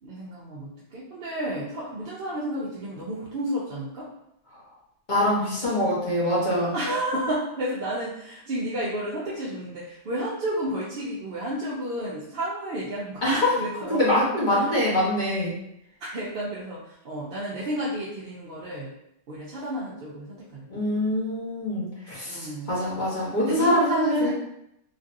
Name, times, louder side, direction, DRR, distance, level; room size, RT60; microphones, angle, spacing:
voice 1, 0.0-4.1 6.7-14.0 14.6-14.7 16.0-18.9 19.3-20.7 22.2-22.7 23.4-24.3, right 1 dB, 60° right, -6 dB, 0.6 m, -31 dB
voice 2, 5.1-6.8 13.2-13.6 13.9-15.6 20.7-24.3, left 1 dB, 40° left, -7 dB, 1.1 m, -24 dB
3.1 x 2.6 x 2.5 m, 0.79 s
omnidirectional pair, 1.4 m